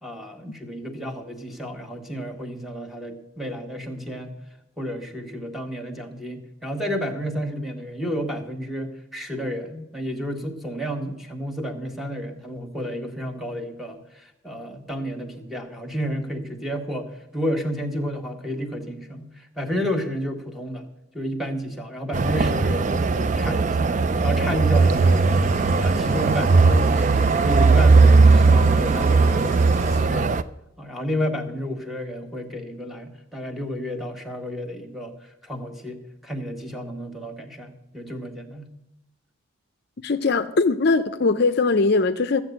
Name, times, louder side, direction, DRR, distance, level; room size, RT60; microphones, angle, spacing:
voice 1, 0.0-4.3 4.8-20.9 21.1-25.5 25.8-29.6 29.9-30.3 30.8-38.7, equal, ahead, 4 dB, 1.2 m, -31 dB
sound 1, 22.1-30.4, right 4 dB, 35° right, 0.4 m, -18 dB
Engine starting / Idling, 24.7-30.0, right 1 dB, 75° right, 3.3 m, -37 dB
voice 2, 40.0-42.4, left 3 dB, 50° left, 10 dB, 0.5 m, -20 dB
13.5 x 7.3 x 7.9 m, 0.86 s
head